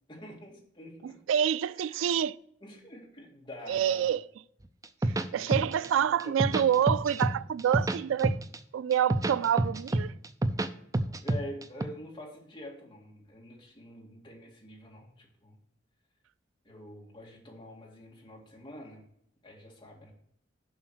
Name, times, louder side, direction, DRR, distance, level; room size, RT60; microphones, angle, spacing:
voice 1, 0.1-1.2 1.8-2.1 2.6-4.2 5.3-6.3 11.2-15.5 16.6-19.0 19.4-20.1, left 1 dB, 25° left, 2.1 m, -46 dB
voice 2, 1.0-2.4 3.7-4.2 5.3-8.4 8.7-10.1, right 9 dB, 90° right, 0.3 m, -27 dB
sound 1, 4.8-5.9 6.2-7.3 7.6-8.6 8.9-10.7 10.9-11.8, right 1 dB, 20° right, 0.4 m, -27 dB
7.3 x 5.6 x 6.1 m
head